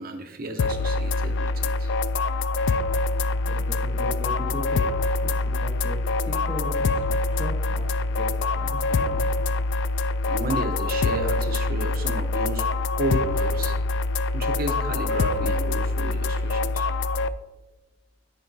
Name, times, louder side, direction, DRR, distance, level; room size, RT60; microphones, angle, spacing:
voice 1, 0.0-1.9 10.3-12.7 13.0-13.8 14.3-16.9, right 2 dB, 55° right, 5 dB, 0.9 m, -32 dB
sound 1, 0.6-17.3, left 3 dB, 80° left, 0.3 m, -25 dB
voice 2, 3.4-4.8 5.2-6.0 6.2-9.2, equal, 30° left, -2 dB, 2.0 m, -37 dB
13.0 x 4.8 x 2.7 m, 1.1 s
head